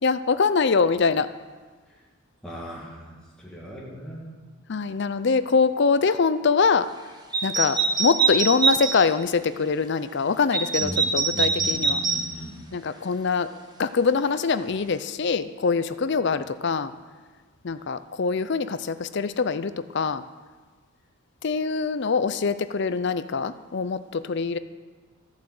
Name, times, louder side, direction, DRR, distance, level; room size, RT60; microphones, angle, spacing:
voice 1, 0.0-1.3 4.7-6.9 7.4-12.0 12.7-13.5 13.8-16.9 17.6-20.2 21.4-24.6, left 5 dB, 50° left, 13 dB, 0.5 m, -24 dB
voice 2, 2.4-4.4 10.8-12.6 12.9-13.1, equal, 5° left, -5 dB, 2.2 m, -38 dB
sound 1, 7.3-9.0 10.5-12.2, right 4 dB, 20° right, 1.1 m, -23 dB
14.0 x 7.3 x 7.7 m, 1.4 s
head